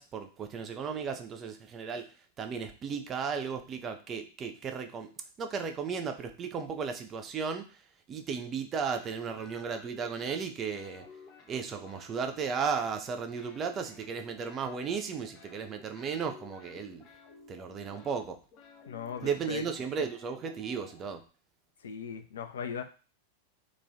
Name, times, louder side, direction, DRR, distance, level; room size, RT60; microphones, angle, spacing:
voice 1, 0.0-2.1 2.4-5.1 5.4-7.8 8.1-11.0 11.5-17.0 17.5-18.4 19.2-21.2, right 6 dB, 25° right, 7 dB, 0.4 m, -35 dB
sound 1, 8.9-10.5 10.7-13.1 13.4-21.0, left 4 dB, 30° left, 0.7 m, -54 dB
voice 2, 18.9-19.6 21.8-22.8, left 7 dB, 65° left, 7 dB, 0.3 m, -38 dB
3.0 x 2.2 x 2.5 m, 0.35 s
figure-of-eight pair, 90°, 0 cm